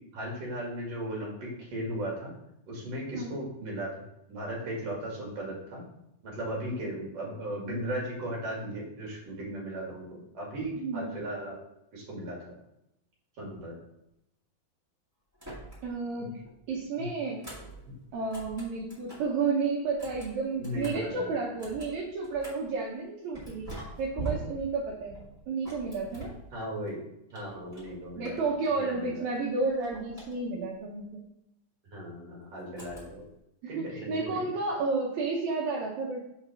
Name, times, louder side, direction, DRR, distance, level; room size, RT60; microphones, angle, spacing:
voice 1, 0.1-2.3 2.7-3.9 4.3-5.8 6.2-11.6 11.9-12.5 13.4-13.7 16.2-16.3 17.0-17.1 20.6-21.3 26.5-27.0 27.3-28.4 28.7-29.3 31.9-33.3 33.7-34.5, right 1 dB, 50° right, -3 dB, 2.9 m, -36 dB
sound 1, 15.3-16.1 16.4-19.4 19.8-22.8 23.3-26.9 27.3-29.1 29.3-30.8 32.7-33.4, right 3 dB, 10° right, 1.2 m, -44 dB
voice 2, 15.8-16.3 16.7-17.4 18.1-23.7 24.0-25.1 25.5-26.3 28.2-31.2 33.6-36.2, right 4 dB, 70° right, -3 dB, 1.9 m, -31 dB
5.4 x 4.5 x 5.9 m, 0.83 s
omnidirectional pair, 4.1 m